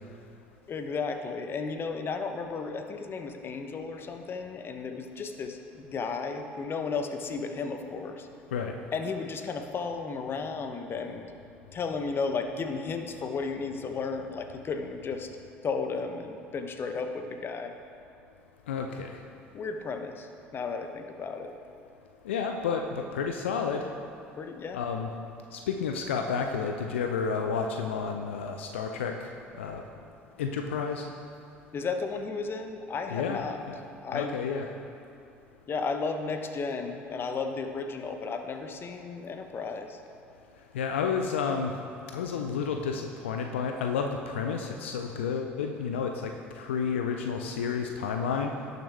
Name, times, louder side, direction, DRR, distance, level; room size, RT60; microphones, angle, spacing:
voice 1, 0.7-8.3 8.9-11.2 11.7-15.3 15.6-17.8 19.5-21.5 24.4-24.8 31.7-33.6 34.0-34.4 35.7-40.0, left 4 dB, 35° left, 7 dB, 0.9 m, -34 dB
voice 2, 18.7-19.2 22.2-23.9 24.7-25.1 25.5-29.3 29.6-29.8 30.4-31.1 33.1-33.8 34.1-34.7 40.7-41.8 42.1-48.5, left 6 dB, 75° left, 4 dB, 0.5 m, -31 dB
17.5 x 6.6 x 3.4 m, 2.5 s
figure-of-eight pair, 60°, 7 cm